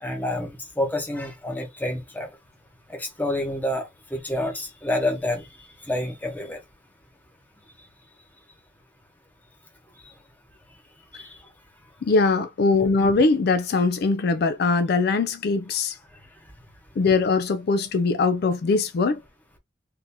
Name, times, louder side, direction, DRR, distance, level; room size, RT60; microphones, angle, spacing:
voice 1, 0.0-2.3 2.9-5.4 5.9-6.6 11.2-11.3, left 1 dB, 10° left, 0.9 m, -28 dB
voice 2, 12.0-16.0 17.0-19.2, left 3 dB, 55° left, 0.4 m, -21 dB
3.7 x 2.6 x 2.8 m
head